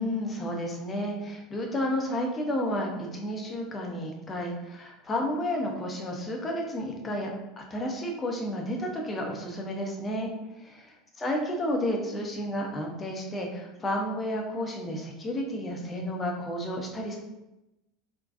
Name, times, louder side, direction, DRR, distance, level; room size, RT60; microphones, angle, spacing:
voice 1, 0.0-10.3 10.6-17.2, left 1 dB, 20° left, 0 dB, 0.7 m, -31 dB
3.9 x 2.2 x 2.6 m, 0.97 s
figure-of-eight pair, 75°, 0 cm